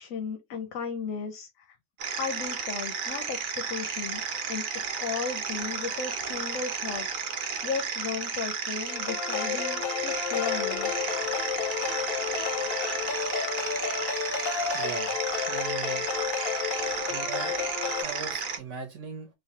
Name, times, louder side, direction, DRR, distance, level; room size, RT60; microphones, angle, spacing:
voice 1, 0.0-1.8 2.2-4.2 4.5-4.6 5.0-10.9, left 6 dB, 85° left, 1.0 m, -35 dB
sound 1, 2.0-18.6, right 6 dB, 55° right, 0.6 m, -33 dB
sound 2, 8.9-18.0, left 8 dB, 60° left, 0.7 m, -31 dB
voice 2, 14.7-15.2 15.5-16.1 17.1-17.6 18.0-19.3, right 6 dB, 70° right, 1.0 m, -39 dB
3.1 x 2.1 x 2.7 m
omnidirectional pair, 1.4 m